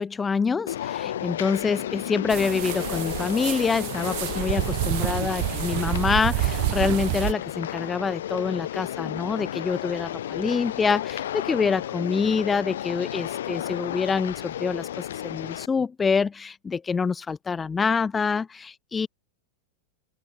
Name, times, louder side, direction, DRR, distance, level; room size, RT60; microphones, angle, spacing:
voice 1, 0.0-19.1, left 5 dB, 15° left, 0.9 m, -26 dB
sound 1, 0.7-15.7, left 11 dB, 60° left, 0.3 m, -33 dB
sound 2, 2.3-7.3, right 30 dB, 45° right, 1.0 m, -28 dB
open air
figure-of-eight pair, 90°, 0 cm